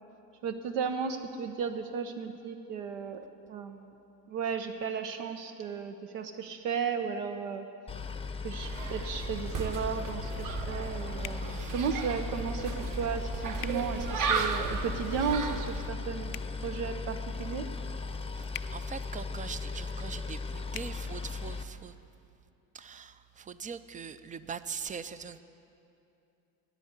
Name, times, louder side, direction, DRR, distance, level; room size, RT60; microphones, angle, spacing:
voice 1, 0.4-4.0 4.3-7.7 8.4-16.3 16.6-17.7, right 6 dB, 75° right, 7 dB, 0.8 m, -34 dB
Boat Water vehicle, 7.9-21.6, left 4 dB, 15° left, 0.7 m, -37 dB
sound 1, 8.6-15.9, right 5 dB, 40° right, 1.0 m, -35 dB
sound 2, 11.2-11.4 13.6-13.8 16.3-16.5 18.5-18.7 20.7-20.9, left 18 dB, 80° left, 0.5 m, -41 dB
voice 2, 11.5-11.9 18.3-21.9 22.7-25.4, right 6 dB, 20° right, 13 dB, 0.3 m, -42 dB
9.2 x 9.1 x 9.5 m, 2.7 s
hypercardioid pair, 70°, 46 cm